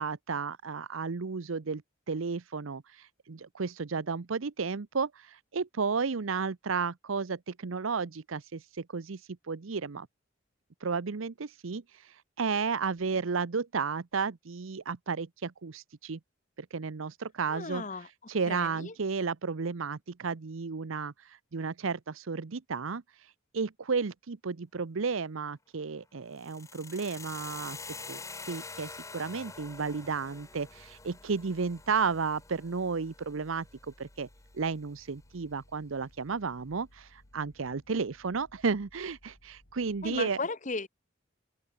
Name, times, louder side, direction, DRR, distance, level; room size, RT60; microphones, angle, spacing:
voice 1, 0.0-1.8 2.1-10.1 10.8-16.2 16.6-17.8 18.3-23.3 23.5-27.8 28.1-28.2 28.5-33.7 34.0-34.3 34.5-40.4, right 5 dB, 80° right, 0.7 m, -33 dB
voice 2, 17.5-18.1 18.5-18.9 40.0-40.9, left 3 dB, 35° left, 1.2 m, -36 dB
sound 1, 26.3-34.4, left 4 dB, 15° left, 2.1 m, -46 dB
sound 2, 29.5-40.2, left 1 dB, 80° left, 3.7 m, -60 dB
open air
head